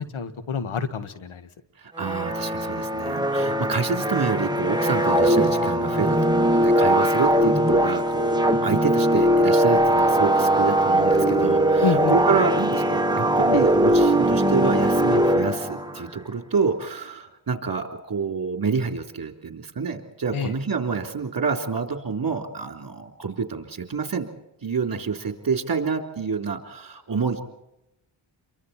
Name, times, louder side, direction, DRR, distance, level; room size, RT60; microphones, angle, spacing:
voice 1, 0.0-1.5 11.8-12.1 20.3-20.5, left 6 dB, 80° left, 11 dB, 1.8 m, -27 dB
voice 2, 1.8-24.3 24.6-27.4, right 5 dB, 45° right, 5 dB, 3.4 m, -28 dB
sound 1, 2.0-16.1, right 1 dB, 10° right, 1.6 m, -20 dB
29.0 x 23.5 x 4.3 m, 0.86 s
cardioid pair, 80°, 48 cm